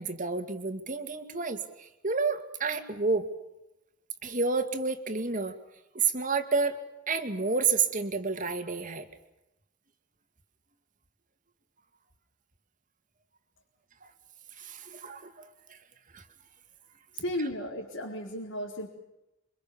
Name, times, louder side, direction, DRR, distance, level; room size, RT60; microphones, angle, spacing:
voice 1, 0.0-3.3 4.2-5.5 5.9-6.8 7.1-9.1 14.6-15.8 16.1-16.2, right 4 dB, 40° right, 7 dB, 2.2 m, -30 dB
voice 2, 17.1-18.9, equal, 75° left, -2 dB, 4.3 m, -34 dB
28.0 x 24.5 x 7.2 m, 0.93 s
head